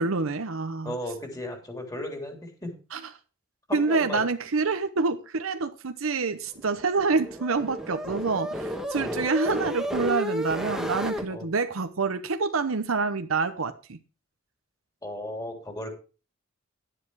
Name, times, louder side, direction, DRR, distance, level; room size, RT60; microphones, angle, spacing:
voice 1, 0.0-0.9 2.9-3.0 3.7-14.0, right 4 dB, 90° right, 0.9 m, -27 dB
voice 2, 0.8-3.1 3.7-4.2 9.0-9.3 11.3-11.5 15.0-15.9, left 1 dB, 20° left, 3.4 m, -36 dB
sound 1, 6.5-11.2, equal, ahead, 1.4 m, -32 dB
11.0 x 10.0 x 4.7 m
head